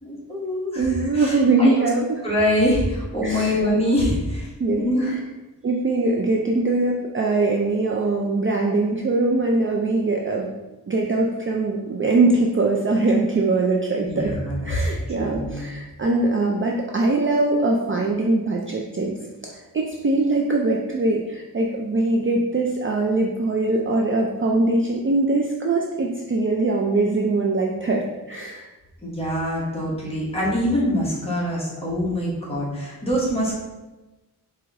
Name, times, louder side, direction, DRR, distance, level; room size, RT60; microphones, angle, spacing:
voice 1, 0.0-1.7 2.2-4.5 4.8-5.1 14.0-15.7 29.0-33.5, equal, 15° left, -6 dB, 1.3 m, -24 dB
voice 2, 0.8-2.2 3.2-3.6 4.6-4.8 5.6-10.5 10.9-14.4 14.6-19.2 19.4-28.7, right 2 dB, 35° right, -1 dB, 0.4 m, -22 dB
4.6 x 3.0 x 3.5 m, 1.1 s
wide cardioid pair, 150°, 38 cm